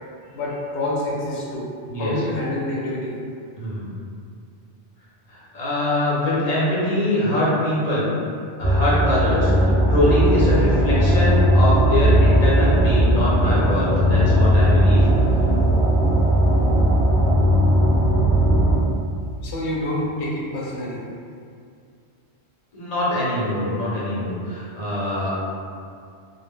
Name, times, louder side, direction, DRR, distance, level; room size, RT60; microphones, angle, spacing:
voice 1, 0.3-1.7 2.0-3.2 19.4-21.1, left 1 dB, 75° left, -4 dB, 0.8 m, -27 dB
voice 2, 5.3-8.1 8.6-15.0 22.7-25.4, left 1 dB, 40° left, -8 dB, 0.7 m, -23 dB
sound 1, 8.6-18.8, equal, 35° right, 0.6 m, -17 dB
2.1 x 2.0 x 3.5 m, 2.3 s
omnidirectional pair, 1.1 m